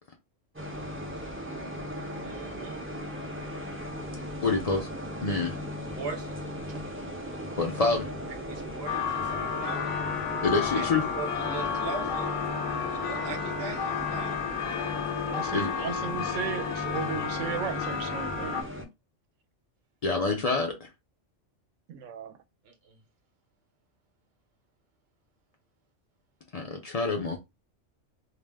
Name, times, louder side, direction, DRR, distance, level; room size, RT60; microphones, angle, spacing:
sound 1, 0.5-18.8, left 1 dB, 20° right, 0.3 m, -37 dB
voice 1, 2.2-2.8 6.0-6.4 6.7-6.8 8.5-9.9 10.7-10.9 11.1-12.3 12.9-14.4 22.6-23.0, right 5 dB, 60° right, 0.9 m, -40 dB
voice 2, 4.4-4.9 5.2-5.6 7.6-8.1 10.4-11.1 15.5-15.7 20.0-20.9 26.5-27.4, left 3 dB, 60° left, 0.4 m, -27 dB
sound 2, 8.9-18.6, left 7 dB, 80° left, 0.9 m, -32 dB
voice 3, 15.3-18.7 21.9-22.4, right 9 dB, 85° right, 0.9 m, -35 dB
2.4 x 2.0 x 3.3 m
omnidirectional pair, 1.3 m